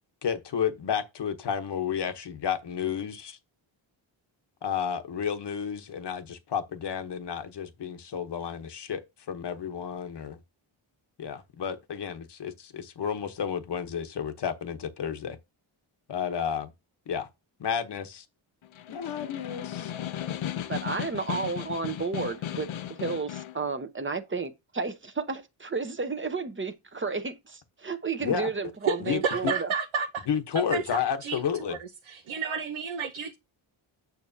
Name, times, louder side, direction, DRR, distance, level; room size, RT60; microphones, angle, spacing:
voice 1, 0.2-3.4 4.6-9.0 9.3-10.4 11.2-15.4 16.1-16.7 17.1-17.3 17.6-18.2 18.9-19.9 28.2-28.5 29.0-29.5 30.3-31.8, left 7 dB, 55° left, 1.1 m, -31 dB
Snare drum, 18.6-23.6, left 11 dB, 70° left, 0.8 m, -36 dB
voice 2, 20.7-22.7 23.0-29.7, right 4 dB, 25° right, 0.9 m, -32 dB
voice 3, 29.2-30.3 30.5-30.8 31.2-31.4 31.7-31.8 32.1-33.3, right 6 dB, 80° right, 1.0 m, -30 dB
9.3 x 6.0 x 2.8 m
wide cardioid pair, 120°, 48 cm